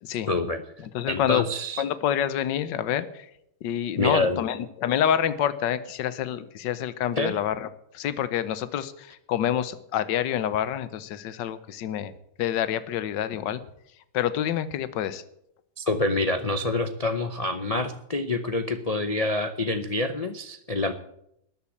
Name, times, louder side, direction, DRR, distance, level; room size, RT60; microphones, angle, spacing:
voice 1, 0.3-0.6 1.1-1.8 4.0-4.4 7.2-7.4 15.8-20.9, left 2 dB, 50° left, 8 dB, 0.4 m, -26 dB
voice 2, 0.9-1.4 1.8-3.2 3.6-7.7 7.9-12.1 12.4-13.6 14.1-15.2, left 10 dB, 75° left, 14 dB, 1.5 m, -27 dB
13.0 x 8.8 x 8.5 m, 0.76 s
omnidirectional pair, 2.0 m